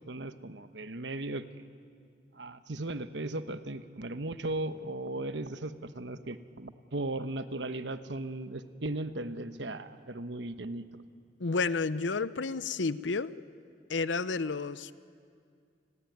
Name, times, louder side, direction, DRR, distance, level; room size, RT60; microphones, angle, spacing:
voice 1, 0.1-1.4 2.4-10.9, right 2 dB, 80° right, 10 dB, 1.2 m, -37 dB
voice 2, 11.4-13.3 13.9-14.9, left 4 dB, 90° left, 16 dB, 0.7 m, -31 dB
30.0 x 21.0 x 9.5 m, 2.3 s
head